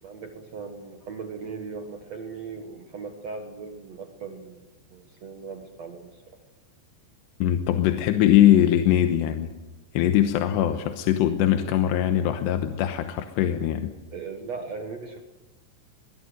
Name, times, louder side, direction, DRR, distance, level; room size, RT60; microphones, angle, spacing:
voice 1, 0.0-6.4 14.1-15.2, right 5 dB, 60° right, 5 dB, 1.8 m, -38 dB
voice 2, 7.4-9.5 9.9-13.9, left 11 dB, 75° left, 7 dB, 3.1 m, -21 dB
21.5 x 21.5 x 7.9 m, 1.1 s
omnidirectional pair, 5.2 m